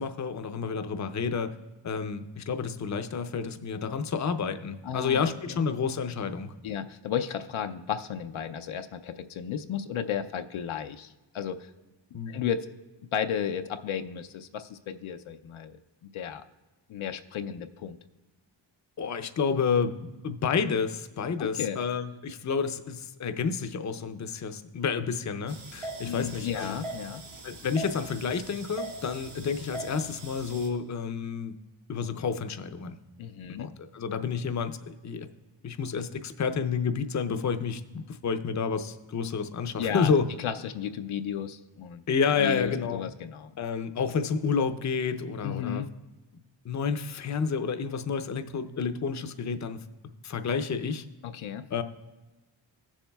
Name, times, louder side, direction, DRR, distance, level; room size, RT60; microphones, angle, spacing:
voice 1, 0.0-1.5 1.8-6.5 12.1-12.4 19.0-26.8 27.4-31.6 31.9-33.0 33.6-35.3 35.6-40.3 42.1-43.0 43.6-45.8 46.6-49.8 50.2-51.0 51.7-51.8, left 6 dB, 35° left, 9 dB, 0.6 m, -30 dB
voice 2, 4.8-5.3 6.6-11.7 12.3-12.7 13.1-15.8 16.1-16.4 16.9-18.0 21.4-21.8 25.8-27.2 33.2-33.7 39.8-40.1 40.4-42.0 42.4-43.5 45.4-45.9 51.2-51.7, left 8 dB, 80° left, 8 dB, 0.6 m, -33 dB
sound 1, 25.5-30.7, right 2 dB, 90° right, 1.9 m, -41 dB
16.0 x 7.2 x 2.3 m, 1.1 s
cardioid pair, 75°, 47 cm